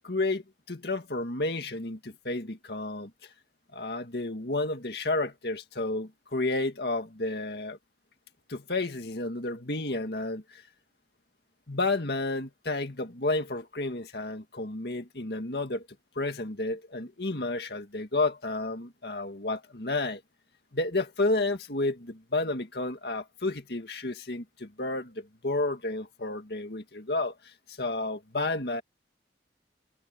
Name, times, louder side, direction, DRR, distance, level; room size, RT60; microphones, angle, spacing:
voice 1, 0.0-0.4 0.7-3.3 3.7-7.8 8.5-10.6 11.7-15.9 16.2-20.2 20.7-28.8, left 2 dB, 60° left, 2.0 m, -31 dB
head